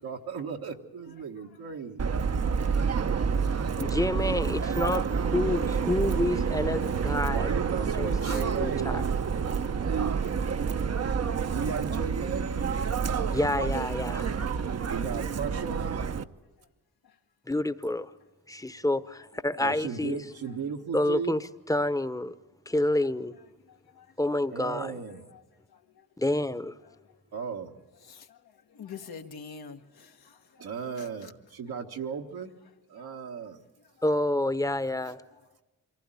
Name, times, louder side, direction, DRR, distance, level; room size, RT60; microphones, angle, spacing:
voice 1, 0.0-2.0 7.3-9.3 9.7-10.2 11.5-12.5 14.9-16.0 19.6-21.3 24.5-25.2 27.3-27.8 30.6-32.5 32.9-33.6, right 6 dB, 75° right, 1.5 m, -35 dB
Subway metro underground, 2.0-16.2, right 6 dB, 45° right, 0.8 m, -28 dB
voice 2, 3.8-7.6 8.0-9.0 9.5-9.6 13.3-14.3 17.5-18.1 18.5-20.3 20.9-22.3 22.7-23.3 24.2-24.9 26.2-26.8 34.0-35.2, left 1 dB, 10° left, 0.9 m, -28 dB
voice 3, 10.5-11.4 19.1-19.6 21.0-21.1 23.3-23.4 24.0-24.1 25.3-25.4 26.8-26.9 28.0-28.4 28.7-30.4 31.0-31.3, left 6 dB, 75° left, 1.3 m, -47 dB
24.5 x 15.5 x 9.0 m
supercardioid pair, 45°, 37 cm